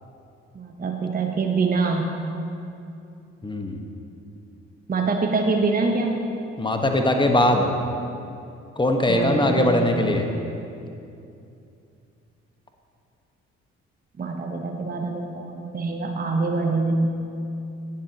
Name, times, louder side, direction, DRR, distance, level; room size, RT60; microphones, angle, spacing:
voice 1, 0.5-2.1 4.9-6.2 9.1-10.1 14.2-17.1, right 3 dB, 25° right, 2 dB, 0.9 m, -25 dB
voice 2, 3.4-3.8 6.6-7.7 8.8-10.3, left 1 dB, 15° left, 4 dB, 1.3 m, -20 dB
18.0 x 7.4 x 2.9 m, 2.6 s
hypercardioid pair, 45°, 35 cm